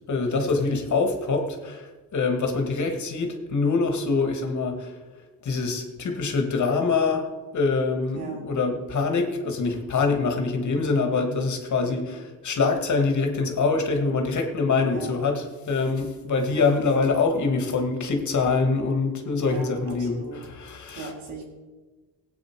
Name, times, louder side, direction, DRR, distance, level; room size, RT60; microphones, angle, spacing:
voice 1, 0.1-4.9 5.4-21.1, left 4 dB, 50° left, 4 dB, 2.3 m, -25 dB
voice 2, 8.1-8.4 11.8-12.0 14.9-15.1 16.5-16.6 19.4-20.4 21.0-21.4, right 4 dB, 85° right, -1 dB, 3.8 m, -37 dB
17.0 x 8.9 x 4.8 m, 1.3 s
cardioid pair, 90°, 36 cm